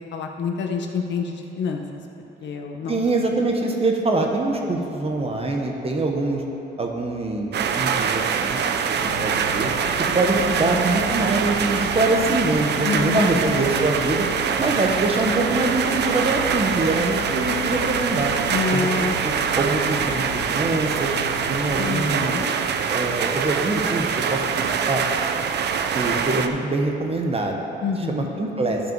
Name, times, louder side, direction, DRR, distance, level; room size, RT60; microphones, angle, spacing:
voice 1, 0.1-1.8 2.4-3.0 12.8-13.5 18.5-19.2 21.8-22.5 27.8-28.3, left 5 dB, 65° left, 3 dB, 0.9 m, -27 dB
voice 2, 2.9-6.4 6.8-9.7 10.1-14.3 14.6-18.3 18.7-21.1 21.5-22.3 22.9-25.0 25.9-27.6 28.1-28.8, right 2 dB, 30° right, 2 dB, 1.2 m, -24 dB
sound 1, 7.5-26.5, right 7 dB, 60° right, 0.6 m, -24 dB
sound 2, 9.0-21.8, left 4 dB, 35° left, 1.1 m, -37 dB
12.0 x 5.2 x 4.7 m, 3.0 s
cardioid pair, 90°, 20 cm